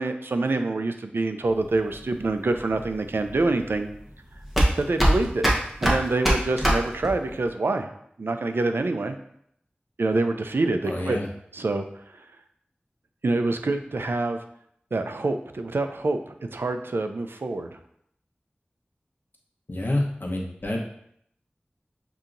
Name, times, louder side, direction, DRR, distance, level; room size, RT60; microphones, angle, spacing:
voice 1, 0.0-3.9 4.8-5.5 5.8-7.9 8.2-9.2 10.0-11.2 11.5-11.9 13.2-14.4 14.9-17.7, right 2 dB, 85° right, 7 dB, 0.4 m, -26 dB
sound 1, 1.5-7.5, right 1 dB, 5° right, 1.1 m, -24 dB
voice 2, 10.9-11.3 19.7-20.8, left 1 dB, 60° left, -1 dB, 0.9 m, -28 dB
6.8 x 2.8 x 2.5 m, 0.71 s
wide cardioid pair, 50°, 4 cm